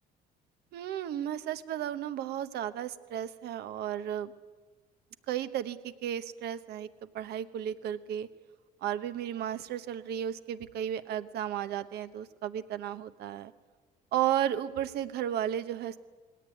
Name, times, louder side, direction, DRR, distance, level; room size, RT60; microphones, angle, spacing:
voice 1, 0.7-4.3 5.3-6.9 7.1-8.3 8.8-13.5 14.1-16.0, right 10 dB, 75° right, 12 dB, 1.1 m, -33 dB
20.5 x 17.5 x 9.6 m, 1.4 s
cardioid pair, 110°, 17 cm